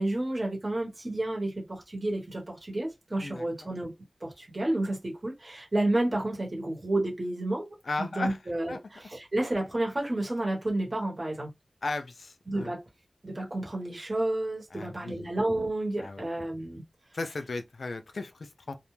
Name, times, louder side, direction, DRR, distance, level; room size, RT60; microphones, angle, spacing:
voice 1, 0.0-3.9 4.2-11.5 12.5-12.8 13.2-16.8, right 1 dB, 45° right, 1.1 m, -31 dB
voice 2, 3.2-3.7 7.8-8.4 8.7-8.8 11.8-12.7 14.7-15.2 16.0-16.3 17.1-18.8, left 3 dB, 80° left, 0.3 m, -36 dB
2.3 x 2.1 x 3.1 m
wide cardioid pair, 45°, 0 cm